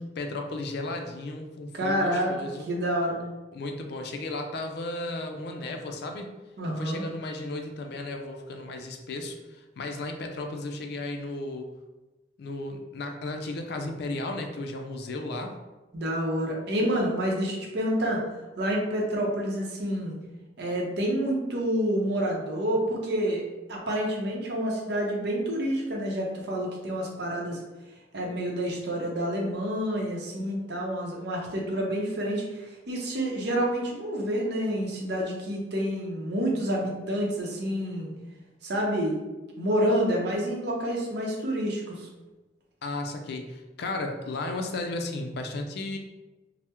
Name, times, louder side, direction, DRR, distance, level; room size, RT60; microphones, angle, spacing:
voice 1, 0.2-2.7 3.5-6.3 6.6-11.7 12.4-15.6 42.8-46.0, left 2 dB, 65° left, 4 dB, 0.4 m, -34 dB
voice 2, 1.7-2.3 2.7-3.2 6.6-7.0 15.9-18.2 18.6-20.1 20.6-23.4 23.7-27.6 28.1-38.1 38.6-39.2 39.6-42.1, equal, 65° right, -1 dB, 0.7 m, -28 dB
3.4 x 2.0 x 2.9 m, 1.1 s
head